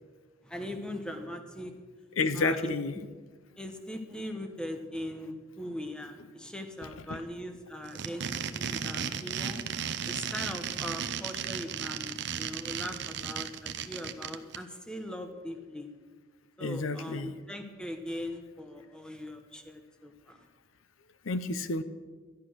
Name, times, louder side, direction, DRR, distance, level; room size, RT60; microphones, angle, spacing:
voice 1, 0.4-1.7 2.3-2.8 3.6-8.2 8.5-9.6 10.1-15.9 16.6-20.5, left 1 dB, 5° left, 6 dB, 1.1 m, -40 dB
voice 2, 2.2-3.0 6.8-7.2 16.6-17.3 21.2-21.8, left 3 dB, 85° left, 13 dB, 0.7 m, -30 dB
sound 1, 7.8-14.6, right 8 dB, 60° right, 0.7 m, -35 dB
12.5 x 11.5 x 6.3 m, 1.4 s
head